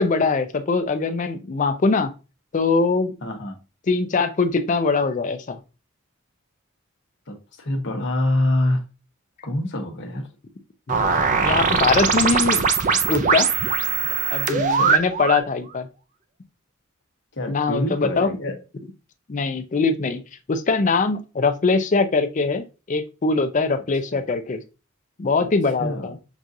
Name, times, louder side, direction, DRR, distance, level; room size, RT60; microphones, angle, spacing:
voice 1, 0.0-2.1 2.5-3.2 3.9-5.6 10.9-11.2 11.4-12.6 13.1-13.5 14.3-15.9 17.5-18.3 19.3-20.2 20.5-24.6 25.2-26.2, left 4 dB, 35° left, 8 dB, 0.4 m, -22 dB
voice 2, 3.2-3.6 7.3-8.8 9.4-10.3 14.5-15.0 17.3-18.6 25.8-26.1, left 1 dB, 55° left, 3 dB, 1.0 m, -25 dB
sound 1, 10.9-15.5, right 5 dB, 35° right, 0.4 m, -21 dB
6.0 x 2.4 x 2.6 m, 0.31 s
head